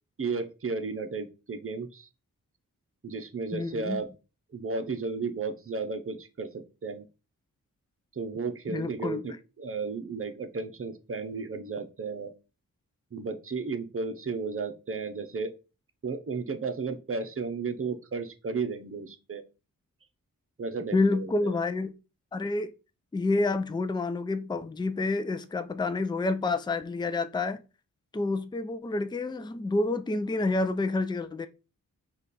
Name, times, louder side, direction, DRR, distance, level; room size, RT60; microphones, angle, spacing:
voice 1, 0.2-2.1 3.0-4.1 4.5-7.1 8.2-12.3 13.1-15.5 16.0-19.4 20.6-21.7, right 4 dB, 40° right, 0.8 m, -34 dB
voice 2, 3.5-4.0 8.7-9.2 20.9-21.9 22.3-22.7 23.1-27.6 28.1-31.5, left 3 dB, 15° left, 0.4 m, -28 dB
5.0 x 2.5 x 4.2 m
cardioid pair, 55°, 34 cm